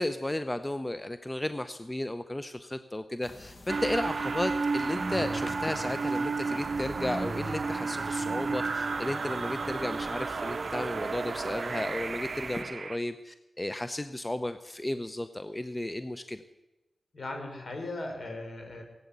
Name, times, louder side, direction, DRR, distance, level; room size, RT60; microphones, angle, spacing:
voice 1, 0.0-16.4, left 1 dB, 20° left, 11 dB, 0.7 m, -34 dB
sound 1, 3.2-12.6, left 2 dB, 45° left, 1.3 m, -48 dB
sound 2, 3.7-13.0, right 4 dB, 65° right, 0.6 m, -32 dB
voice 2, 17.1-18.8, left 2 dB, 65° left, 3 dB, 4.0 m, -38 dB
16.5 x 8.5 x 8.2 m, 1.0 s
cardioid pair, 50°, 0 cm